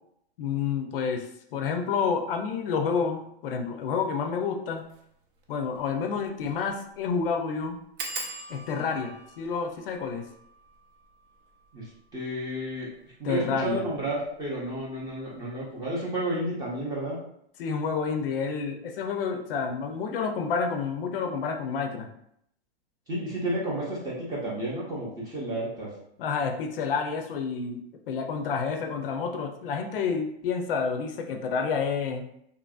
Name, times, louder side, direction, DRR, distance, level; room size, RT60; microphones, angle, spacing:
voice 1, 0.4-4.8 5.5-7.8 8.5-10.3 13.2-13.8 17.6-22.1 26.2-32.2, left 5 dB, 60° left, 4 dB, 0.5 m, -29 dB
sound 1, 4.8-5.0 5.4-5.5 5.7-5.8 6.4-6.7 6.9-7.0 8.0-13.2 13.9-14.4 14.8-15.1 15.4-15.5, right 3 dB, 55° right, 0.6 m, -42 dB
voice 2, 11.7-12.9 13.2-17.2 23.1-25.9, right 1 dB, 10° right, -5 dB, 0.5 m, -31 dB
2.8 x 2.5 x 2.3 m, 0.73 s
hypercardioid pair, 145°, 32 cm